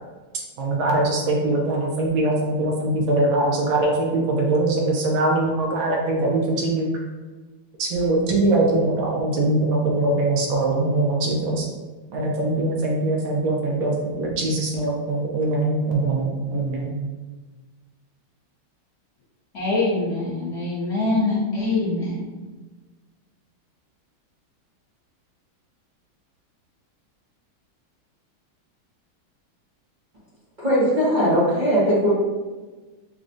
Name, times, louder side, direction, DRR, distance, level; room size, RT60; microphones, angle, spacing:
voice 1, 0.6-6.9 7.8-11.6 12.1-16.9, right 2 dB, 75° right, -1 dB, 1.4 m, -22 dB
voice 2, 19.5-22.2, left 2 dB, 50° left, -8 dB, 1.3 m, -24 dB
voice 3, 30.6-32.1, equal, 40° right, -10 dB, 0.6 m, -19 dB
6.1 x 2.3 x 2.6 m, 1.3 s
omnidirectional pair, 2.3 m